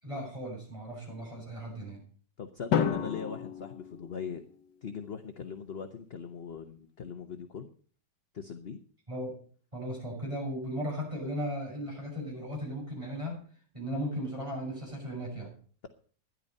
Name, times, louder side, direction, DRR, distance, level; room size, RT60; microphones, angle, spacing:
voice 1, 0.0-2.0 9.1-9.4 9.7-13.5 13.7-15.5, equal, 15° right, -2 dB, 7.2 m, -36 dB
voice 2, 2.4-4.4 4.8-7.7 8.3-8.8, left 6 dB, 40° left, 7 dB, 1.0 m, -40 dB
Drum, 2.7-4.8, left 8 dB, 75° left, 1.7 m, -32 dB
12.5 x 10.5 x 5.4 m, 0.43 s
omnidirectional pair, 1.9 m